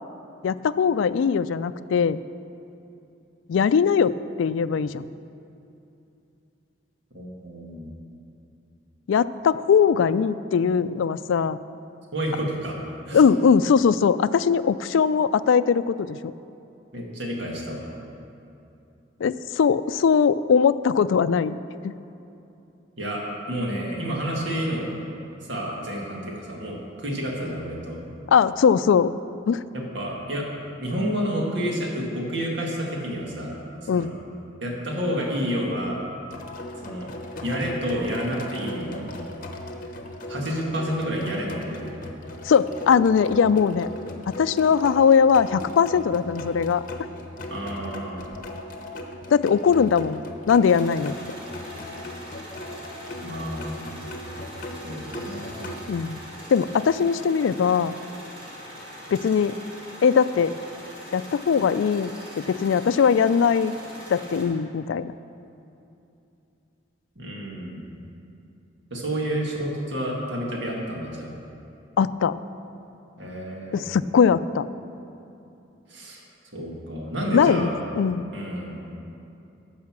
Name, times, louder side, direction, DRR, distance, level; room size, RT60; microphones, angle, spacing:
voice 1, 0.4-2.2 3.5-5.1 9.1-11.6 13.1-16.3 19.2-21.6 21.8-22.0 28.3-29.1 29.5-29.6 33.9-34.1 42.4-43.9 44.4-46.8 49.3-51.1 55.9-56.2 56.5-58.0 59.1-59.6 60.0-60.6 61.1-63.8 64.1-65.1 72.0-72.4 73.7-74.7 77.3-78.2, left 6 dB, 80° left, 15 dB, 0.3 m, -20 dB
voice 2, 7.1-7.9 12.1-13.2 16.9-17.9 23.0-24.9 25.4-28.0 29.7-30.5 30.8-33.6 33.8-34.1 34.6-36.0 36.8-37.1 37.4-39.1 40.3-42.0 47.5-48.3 53.2-53.9 54.8-55.5 67.2-67.8 68.9-71.3 73.2-73.8 75.9-76.2 76.5-77.8 78.3-78.8, equal, 70° right, -2 dB, 1.9 m, -30 dB
sound 1, 36.3-55.8, left 1 dB, 45° left, 0.9 m, -38 dB
sound 2, 50.6-64.4, equal, 25° right, 2.4 m, -42 dB
12.0 x 5.6 x 7.3 m, 2.8 s
head